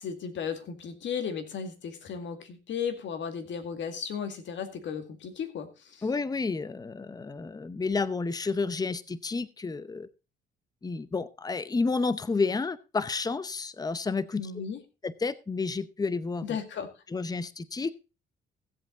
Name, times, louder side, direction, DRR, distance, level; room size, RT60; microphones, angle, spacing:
voice 1, 0.0-6.1 14.4-14.8 16.4-16.9, left 7 dB, 70° left, 8 dB, 2.2 m, -35 dB
voice 2, 6.0-10.1 10.8-14.5 15.0-16.4 17.1-17.9, left 4 dB, 20° left, 16 dB, 0.7 m, -30 dB
16.0 x 8.1 x 3.9 m, 0.30 s
cardioid pair, 90°, 20 cm